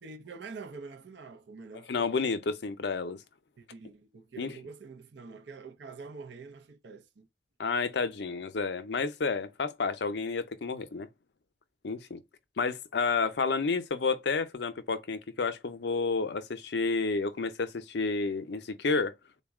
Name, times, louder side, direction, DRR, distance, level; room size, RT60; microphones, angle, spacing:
voice 1, 0.0-2.2 3.6-7.3, right 4 dB, 70° right, 0.5 m, -46 dB
voice 2, 1.9-3.2 4.4-4.5 7.6-11.1 11.8-12.2 12.6-19.1, left 4 dB, 65° left, 0.5 m, -30 dB
3.9 x 2.1 x 3.5 m
head